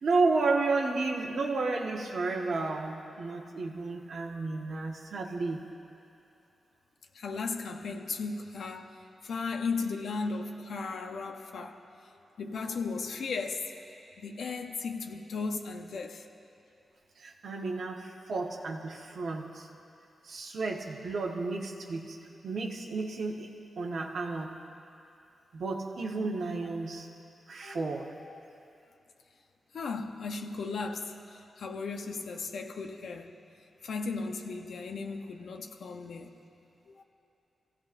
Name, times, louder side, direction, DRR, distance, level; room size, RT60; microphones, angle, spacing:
voice 1, 0.0-5.6 17.2-19.7 20.2-22.2 22.4-24.7 25.5-27.1 27.5-28.2, right 3 dB, 60° right, 1.5 m, -32 dB
voice 2, 7.1-8.9 9.2-11.8 12.4-13.7 14.2-16.3 27.6-27.9 28.2-28.3 29.7-33.4 33.8-36.3 36.9-37.0, left 4 dB, 75° left, 0.9 m, -36 dB
28.5 x 16.0 x 2.7 m
wide cardioid pair, 160°, 0 cm